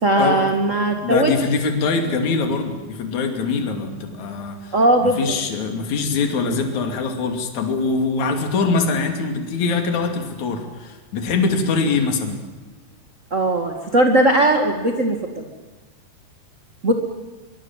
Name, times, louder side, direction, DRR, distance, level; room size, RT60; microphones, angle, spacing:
voice 1, 0.0-1.3 4.7-5.3 13.3-15.2 16.8-16.9, right 1 dB, 40° right, 4 dB, 1.1 m, -18 dB
voice 2, 1.0-4.7 5.0-12.4, left 4 dB, 50° left, 5 dB, 3.8 m, -23 dB
23.5 x 23.0 x 7.4 m, 1.3 s
omnidirectional pair, 4.7 m